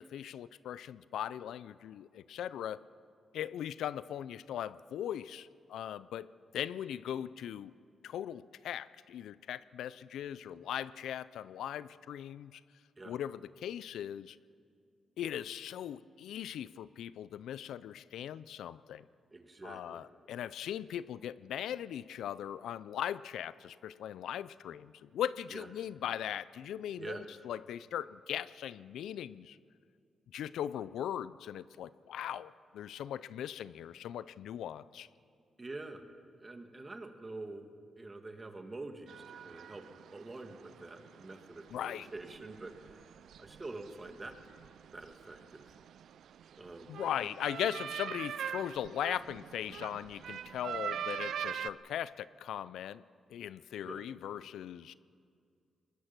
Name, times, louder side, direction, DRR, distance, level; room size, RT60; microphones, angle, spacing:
voice 1, 0.0-2.8 3.3-6.3 6.5-7.7 8.0-12.6 13.1-14.4 15.2-19.0 19.6-29.6 30.3-35.1 41.7-42.1 46.9-53.0 53.3-54.9, left 10 dB, 85° left, 17 dB, 0.4 m, -39 dB
voice 2, 19.3-20.1 25.5-25.7 27.0-27.5 35.6-36.1 36.4-37.7 38.0-39.9 40.1-44.4 44.9-45.7 46.6-46.9 53.8-54.1, right 2 dB, 30° right, 5 dB, 2.2 m, -46 dB
sound 1, 39.1-51.7, right 9 dB, 75° right, 0.4 m, -44 dB
21.0 x 21.0 x 6.1 m, 2.3 s
cardioid pair, 70°, 0 cm